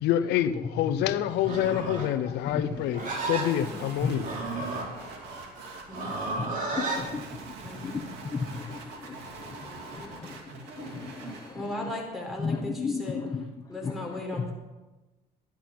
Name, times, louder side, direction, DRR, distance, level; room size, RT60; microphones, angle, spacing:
voice 1, 0.0-4.3, left 11 dB, 85° left, 12 dB, 0.7 m, -27 dB
voice 2, 0.6-1.2 2.3-2.9 3.1-3.2 3.6-4.2 4.6-5.4 6.4-7.4 7.7-12.0 12.4-14.4, left 4 dB, 25° left, 2 dB, 1.2 m, -36 dB
Livestock farm animals working animals, 1.4-7.0, right 3 dB, 50° right, 3.0 m, -34 dB
sound 1, 2.9-11.6, right 3 dB, 85° right, 2.4 m, -43 dB
voice 3, 5.9-6.4 7.6-8.0 9.9-10.1 11.5-13.2 13.7-14.5, left 1 dB, ahead, 0 dB, 4.0 m, -37 dB
13.0 x 10.5 x 6.0 m, 1.1 s
cardioid pair, 110°, 17 cm